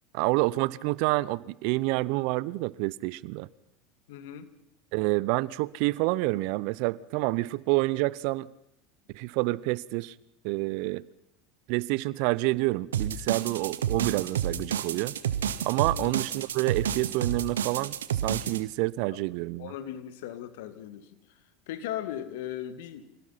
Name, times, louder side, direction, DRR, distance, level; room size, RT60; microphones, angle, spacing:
voice 1, 0.1-3.5 4.9-8.5 9.1-10.1 10.4-11.0 11.7-15.1 15.6-19.7, right 21 dB, 65° right, 0.7 m, -28 dB
voice 2, 4.1-4.5 15.9-16.1 19.1-19.2 19.6-21.4 21.7-23.2, left 11 dB, 70° left, 2.0 m, -38 dB
sound 1, 12.9-18.6, right 9 dB, 85° right, 1.1 m, -30 dB
26.0 x 18.0 x 5.8 m
hypercardioid pair, 85°, 0 cm